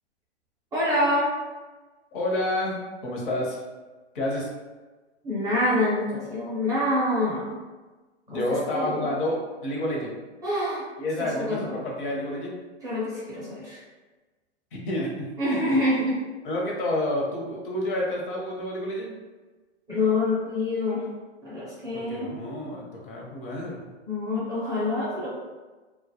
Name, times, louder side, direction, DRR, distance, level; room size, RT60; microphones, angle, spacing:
voice 1, 0.7-1.3 5.2-7.6 8.3-8.4 8.7-9.1 10.4-10.8 11.2-11.7 12.8-13.8 15.4-16.2 19.9-21.0 21.4-22.3 24.1-25.3, left 1 dB, 10° right, -10 dB, 0.4 m, -26 dB
voice 2, 2.1-3.6 4.1-4.5 8.3-10.2 11.0-12.6 14.7-15.8 16.4-19.2 21.9-23.9, left 1 dB, 50° left, -2 dB, 0.7 m, -29 dB
2.2 x 2.1 x 2.7 m, 1.3 s
hypercardioid pair, 120°, 34 cm